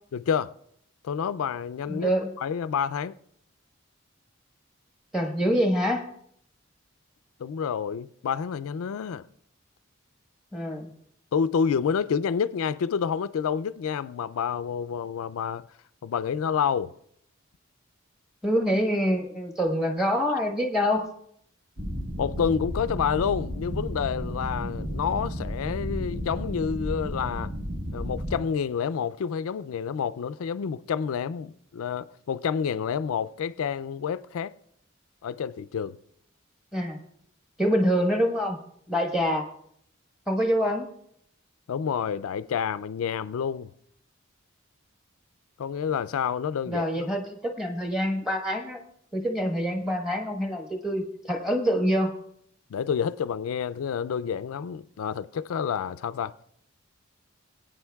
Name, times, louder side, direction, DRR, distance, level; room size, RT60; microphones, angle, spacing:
voice 1, 0.1-0.5 1.0-2.1 2.4-3.2 7.4-9.2 11.3-15.7 16.0-16.9 22.2-27.5 27.9-34.5 35.2-36.0 41.7-43.7 45.6-47.1 52.7-56.3, left 7 dB, 80° left, 0.3 m, -29 dB
voice 2, 1.9-2.3 5.1-6.1 10.5-10.9 18.4-21.1 36.7-37.0 37.6-38.6 38.9-39.5 40.3-40.9 46.7-48.8 49.1-52.1, equal, 5° right, 1.1 m, -26 dB
sound 1, 21.8-28.4, equal, 30° right, 1.2 m, -33 dB
21.5 x 9.1 x 2.3 m
head